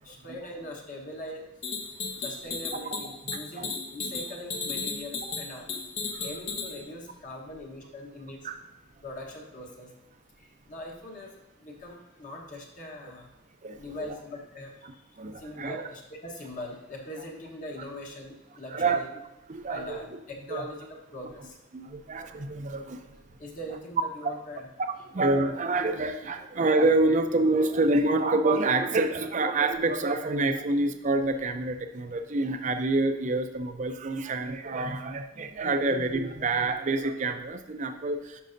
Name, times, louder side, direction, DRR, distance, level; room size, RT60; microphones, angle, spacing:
voice 1, 0.0-1.4 2.2-5.7 6.2-8.4 9.0-9.9 10.4-13.3 13.8-15.0 15.4-19.1 19.7-20.8 21.1-21.6 23.4-24.7, left 1 dB, 45° left, -1 dB, 1.2 m, -41 dB
sound 1, 1.6-6.8, left 4 dB, 75° left, 1.2 m, -34 dB
voice 2, 3.3-3.7 4.0-4.1 8.4-8.6 13.6-14.1 15.2-15.8 18.7-19.0 19.5-20.1 20.5-20.7 21.7-23.0 24.2-24.3 24.8-38.2, right 2 dB, 40° right, 7 dB, 0.5 m, -27 dB
11.5 x 5.4 x 2.6 m, 0.99 s
head